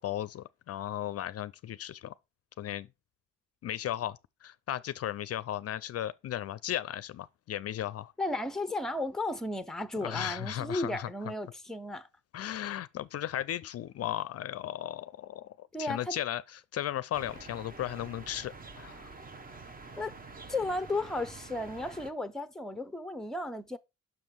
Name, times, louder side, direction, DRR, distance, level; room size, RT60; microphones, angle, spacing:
voice 1, 0.0-2.1 2.6-2.9 3.6-8.1 10.0-11.1 12.3-19.1, left 12 dB, 55° left, 0.4 m, -36 dB
voice 2, 8.2-12.1 15.7-16.2 20.0-20.2 20.5-23.8, left 2 dB, ahead, 0.6 m, -34 dB
sound 1, 17.1-22.1, right 3 dB, 30° right, 0.9 m, -48 dB
6.0 x 5.3 x 4.6 m
cardioid pair, 90°, 30 cm